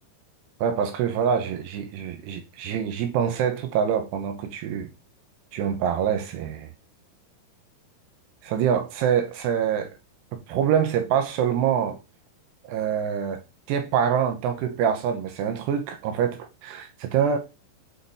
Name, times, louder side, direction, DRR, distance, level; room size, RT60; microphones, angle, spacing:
voice 1, 0.6-4.9 5.5-6.7 8.4-9.9 10.3-12.0 12.6-13.4 13.7-17.4, right 8 dB, 75° right, 2.7 m, -25 dB
7.9 x 4.3 x 4.1 m
omnidirectional pair, 5.4 m